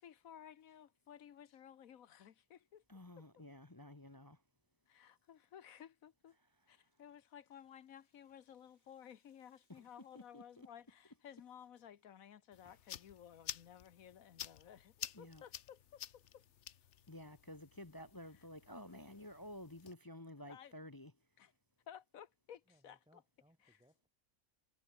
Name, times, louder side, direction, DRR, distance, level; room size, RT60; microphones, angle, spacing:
voice 1, 0.0-2.8 4.9-6.4 6.7-16.4 20.5-20.7 21.4-21.5 21.9-23.0 23.7-23.8, left 9 dB, 75° left, 1.4 m, -56 dB
voice 2, 2.9-4.4 6.4-6.9 9.7-9.9 10.1-10.7 12.6-12.8 15.1-15.4 17.1-21.1, left 1 dB, 20° left, 0.8 m, -52 dB
Rattle (instrument), 6.7-12.2, left 2 dB, 40° left, 4.3 m, -86 dB
sound 1, 12.5-19.9, left 10 dB, 60° left, 1.0 m, -51 dB
voice 3, 22.7-24.1, equal, 5° right, 7.0 m, -72 dB
omnidirectional pair, 1.5 m